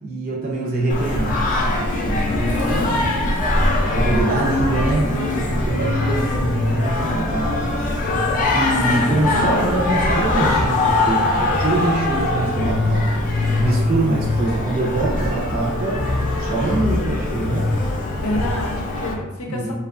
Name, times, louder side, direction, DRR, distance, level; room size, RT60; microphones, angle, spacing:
voice 1, 0.0-3.4 3.9-7.8 8.6-17.7 19.5-19.7, right 2 dB, 40° right, -3 dB, 0.4 m, -24 dB
Singing, 0.9-19.1, left 2 dB, 40° left, 0.4 m, -21 dB
voice 2, 2.3-3.4 3.8-4.8 9.0-9.6 18.2-19.7, left 1 dB, 75° left, -1 dB, 0.6 m, -31 dB
2.6 x 2.2 x 2.4 m, 1.0 s
head